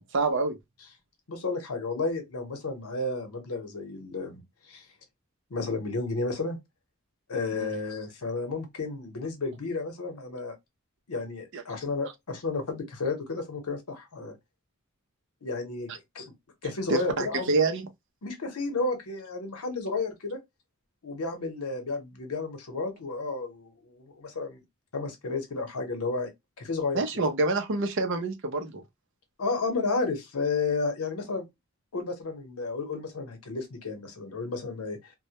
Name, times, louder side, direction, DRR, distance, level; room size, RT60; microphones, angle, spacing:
voice 1, 0.1-0.6 7.5-7.7 11.5-11.6 16.9-17.9 26.9-28.8, right 3 dB, 55° right, 0.5 m, -27 dB
voice 2, 1.3-4.9 5.5-6.6 7.3-10.5 11.1-14.4 15.4-16.3 16.6-17.5 18.2-20.4 21.0-24.6 24.9-26.3 26.6-27.2 29.4-31.5 31.9-35.1, left 3 dB, 85° left, 0.8 m, -32 dB
2.1 x 2.1 x 2.8 m
head